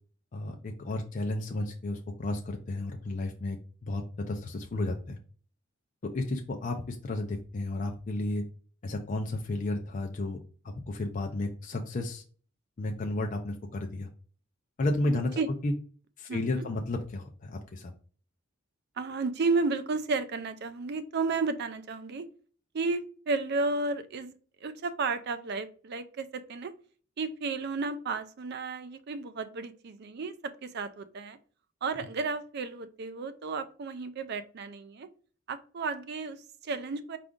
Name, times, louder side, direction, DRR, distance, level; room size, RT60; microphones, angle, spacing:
voice 1, 0.3-5.2 6.1-8.4 8.8-10.4 10.6-12.2 12.8-14.1 14.8-15.7 16.2-17.9, left 2 dB, 40° left, 3 dB, 0.4 m, -32 dB
voice 2, 16.3-16.7 19.0-22.3 22.7-24.3 24.6-26.7 27.2-31.4 31.8-35.1 35.5-37.2, right 3 dB, 55° right, 12 dB, 0.4 m, -33 dB
4.7 x 2.5 x 3.6 m, 0.42 s
head